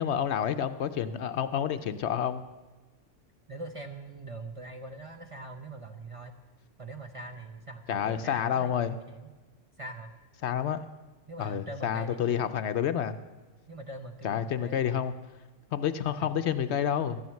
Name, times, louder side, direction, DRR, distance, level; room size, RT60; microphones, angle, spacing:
voice 1, 0.0-2.4 7.9-9.0 10.4-10.8 11.4-13.2 14.2-15.1 15.7-17.2, left 9 dB, 65° left, 10 dB, 0.8 m, -29 dB
voice 2, 3.5-6.3 6.8-9.3 9.8-10.1 11.3-12.5 13.7-15.1 16.0-16.3, right 2 dB, 35° right, 5 dB, 0.7 m, -42 dB
13.5 x 9.3 x 7.0 m, 1.2 s
omnidirectional pair, 1.3 m